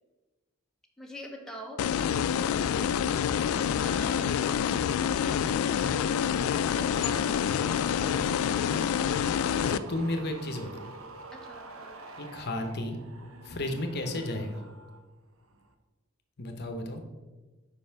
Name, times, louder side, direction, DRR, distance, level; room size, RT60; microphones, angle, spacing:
voice 1, 1.0-1.9 2.2-3.0 3.8-4.8 5.9-6.2 6.5-7.5 11.3-12.0, equal, 5° left, 0 dB, 0.8 m, -45 dB
sound 1, 1.8-9.8, left 8 dB, 85° left, 0.3 m, -27 dB
sound 2, 2.7-15.0 15.3-15.7, right 2 dB, 70° right, 0.7 m, -46 dB
voice 2, 9.6-10.9 12.2-13.0 13.4-14.6 16.4-17.0, left 1 dB, 50° left, 5 dB, 0.8 m, -33 dB
5.3 x 4.9 x 5.7 m, 1.2 s
head